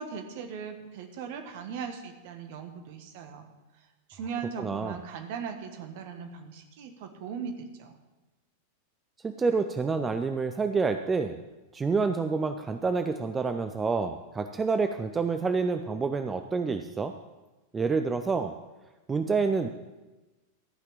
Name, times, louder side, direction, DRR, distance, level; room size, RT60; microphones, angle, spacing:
voice 1, 0.0-3.5 4.1-8.0, right 6 dB, 50° right, 6 dB, 1.5 m, -39 dB
voice 2, 4.6-5.0 9.2-11.4 11.7-17.1 17.7-18.5 19.1-19.7, right 4 dB, 15° right, 7 dB, 0.5 m, -28 dB
14.0 x 5.9 x 7.3 m, 1.1 s
figure-of-eight pair, 90°, 0 cm